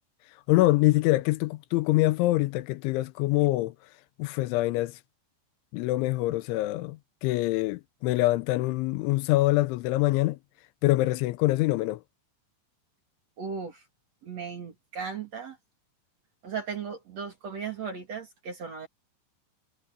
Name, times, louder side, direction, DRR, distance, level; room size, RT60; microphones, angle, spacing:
voice 1, 0.5-3.7 4.2-4.9 5.7-10.4 10.8-12.0, left 18 dB, 90° left, 3.1 m, -25 dB
voice 2, 13.4-13.8 14.2-15.6 16.4-18.9, right 6 dB, 45° right, 2.5 m, -36 dB
omnidirectional pair, 5.4 m